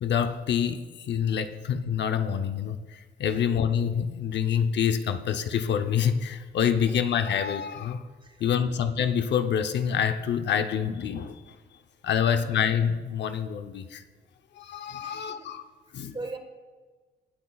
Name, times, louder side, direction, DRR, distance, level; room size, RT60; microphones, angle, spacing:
voice 1, 0.0-8.0 8.4-11.6 12.0-14.0 14.5-15.6 15.9-16.2, left 8 dB, 60° left, 8 dB, 0.7 m, -27 dB
voice 2, 8.2-8.7 12.1-12.6 15.0-15.5 16.1-16.4, right 3 dB, 25° right, 6 dB, 1.4 m, -41 dB
19.5 x 8.4 x 2.4 m, 1.4 s
cardioid pair, 90°, 20 cm